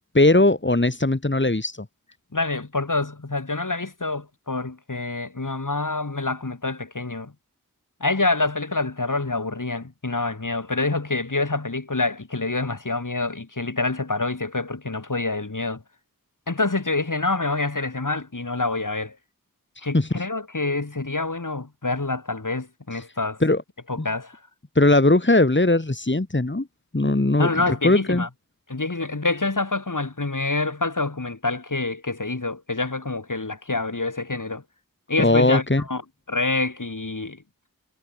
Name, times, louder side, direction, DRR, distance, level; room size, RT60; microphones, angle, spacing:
voice 1, 0.1-1.8 19.9-20.1 23.4-23.6 24.0-24.1 24.8-26.7 26.9-28.3 35.2-35.8, left 2 dB, 35° left, 3.5 m, -19 dB
voice 2, 2.3-7.3 8.0-15.8 16.5-19.1 19.8-23.4 23.9-24.4 27.4-28.3 28.7-34.6 35.1-36.0 36.3-37.4, left 3 dB, 65° left, 6.8 m, -26 dB
wide cardioid pair, 55°, 34 cm